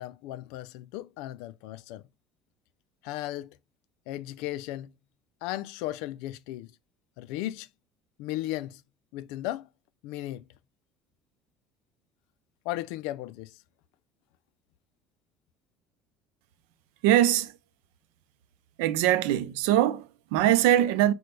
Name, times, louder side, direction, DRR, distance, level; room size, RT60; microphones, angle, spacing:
voice 1, 0.0-2.0 3.0-3.5 4.1-4.9 5.4-6.7 7.2-7.7 8.2-8.8 9.1-9.7 10.0-10.4 12.7-13.6, left 15 dB, 80° left, 0.4 m, -35 dB
voice 2, 17.0-17.5 18.8-21.1, right 12 dB, 90° right, 0.5 m, -22 dB
5.9 x 2.2 x 3.3 m
cardioid pair, 135°, 0 cm